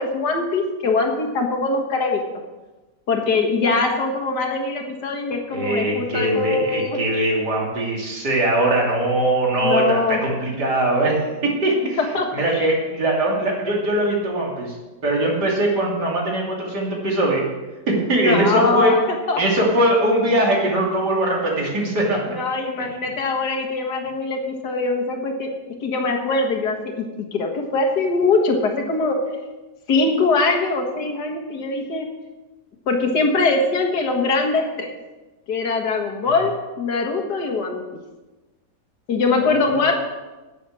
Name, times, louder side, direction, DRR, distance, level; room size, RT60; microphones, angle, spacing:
voice 1, 0.0-2.2 3.1-7.3 9.6-10.2 12.1-12.7 18.1-18.9 19.3-19.4 22.3-25.5 25.8-29.2 29.9-32.1 32.9-34.9 35.5-37.8 39.1-39.9, left 3 dB, 80° left, 2 dB, 2.2 m, -22 dB
voice 2, 5.5-12.0 12.3-14.8 15.0-17.4 17.9-18.9 19.4-22.3 39.4-39.8, right 1 dB, 80° right, -2 dB, 3.4 m, -21 dB
10.5 x 9.1 x 6.3 m, 1.2 s
omnidirectional pair, 1.8 m